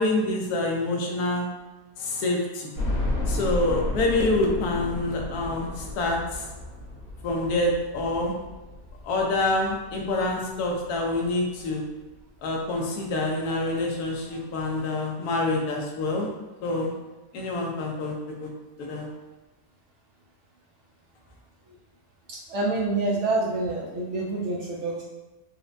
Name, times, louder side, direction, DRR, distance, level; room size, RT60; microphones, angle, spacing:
voice 1, 0.0-1.4 2.0-2.7 3.3-6.5 7.2-8.3 9.0-11.8 12.4-16.3 16.6-16.9 17.3-18.5 18.8-19.1, left 2 dB, 75° left, 0 dB, 1.1 m, -26 dB
sound 1, 2.8-11.7 12.1-12.2 12.6-12.7 13.9-14.0 14.3-14.4, left 1 dB, 45° left, 1.1 m, -33 dB
voice 2, 22.5-25.0, right 2 dB, 70° right, -4 dB, 0.7 m, -27 dB
4.2 x 2.1 x 2.5 m, 1.1 s
omnidirectional pair, 1.7 m